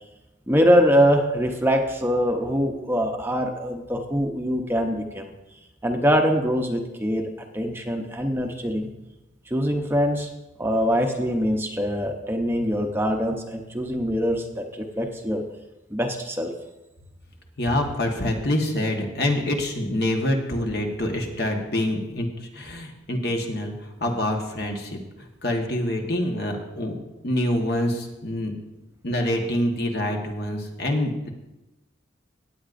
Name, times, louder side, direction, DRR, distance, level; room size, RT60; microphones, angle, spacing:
voice 1, 0.5-5.2 5.8-8.9 9.5-10.3 10.6-15.4 15.9-16.5, equal, 10° right, 3 dB, 0.7 m, -23 dB
voice 2, 17.6-22.3 22.5-25.0 25.4-27.0 27.2-28.5 29.0-31.3, left 1 dB, 55° left, 2 dB, 1.4 m, -26 dB
17.0 x 9.3 x 2.6 m, 1.0 s
head